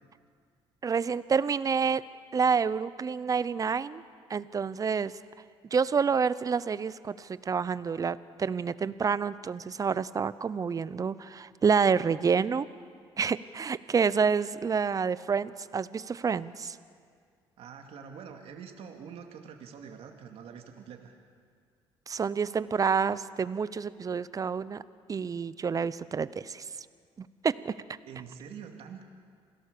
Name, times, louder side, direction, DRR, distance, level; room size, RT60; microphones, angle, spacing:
voice 1, 0.8-2.0 2.3-4.0 4.3-5.1 5.7-12.7 13.2-16.8 22.1-24.8 25.1-26.6 27.2-27.7, right 6 dB, 35° right, 17 dB, 0.8 m, -28 dB
voice 2, 17.6-21.2 28.1-29.0, right 7 dB, 65° right, 4 dB, 2.3 m, -45 dB
27.5 x 17.0 x 6.8 m, 2.1 s
supercardioid pair, 80°, 11 cm